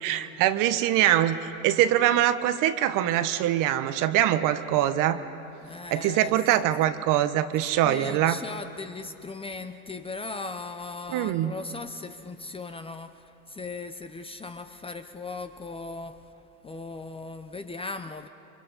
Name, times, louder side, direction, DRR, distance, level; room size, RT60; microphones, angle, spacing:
voice 1, 0.0-1.4 1.6-5.2 5.9-8.4 11.1-11.5, right 12 dB, 45° right, 11 dB, 1.2 m, -23 dB
voice 2, 5.6-6.3 7.8-16.2 16.6-18.3, left 3 dB, 15° left, 9 dB, 0.8 m, -38 dB
29.5 x 24.0 x 5.5 m, 2.8 s
hypercardioid pair, 100°, 43 cm